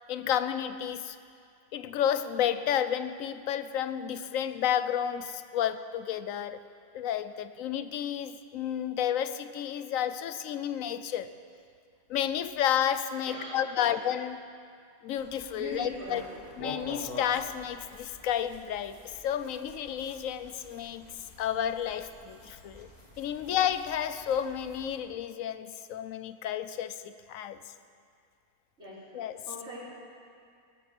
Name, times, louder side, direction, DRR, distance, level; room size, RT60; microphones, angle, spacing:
voice 1, 0.1-1.2 1.7-6.6 6.9-11.3 12.1-14.4 15.0-16.2 16.6-19.0 19.2-21.1 21.4-22.9 23.2-27.6 29.1-29.4, left 9 dB, 70° left, 12 dB, 1.0 m, -31 dB
voice 2, 13.3-13.9 15.5-16.4 23.4-23.5 28.8-30.0, equal, 50° right, -8 dB, 4.5 m, -42 dB
sound 1, 15.2-25.0, left 1 dB, 30° left, 1.9 m, -47 dB
16.0 x 13.0 x 6.6 m, 2.3 s
omnidirectional pair, 1.5 m